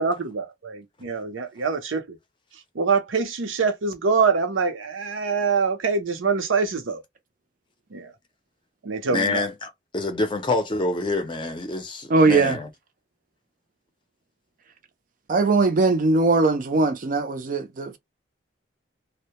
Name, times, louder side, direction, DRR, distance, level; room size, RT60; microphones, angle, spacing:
voice 1, 0.0-2.2 2.7-7.0 7.9-8.1 8.8-9.5, right 5 dB, 90° right, 0.6 m, -24 dB
voice 2, 9.1-12.7, left 2 dB, 25° left, 0.5 m, -27 dB
voice 3, 12.1-12.6 15.3-18.0, right 3 dB, 45° right, 0.4 m, -20 dB
2.1 x 2.0 x 2.8 m
head